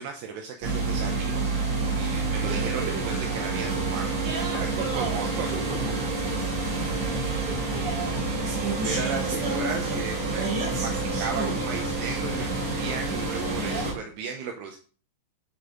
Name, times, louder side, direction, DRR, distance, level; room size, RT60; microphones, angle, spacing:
voice 1, 0.0-1.5 1.9-4.2 4.5-5.5 6.8-7.2 8.8-12.5 12.8-14.8, right 6 dB, 90° right, 4 dB, 2.3 m, -35 dB
sound 1, 0.6-13.9, right 3 dB, 40° right, 3.3 m, -28 dB
voice 2, 2.4-3.2 4.2-6.6 7.1-8.9 13.5-13.9, right 4 dB, 60° right, -4 dB, 6.3 m, -37 dB
12.0 x 5.3 x 3.8 m, 0.39 s
omnidirectional pair, 5.9 m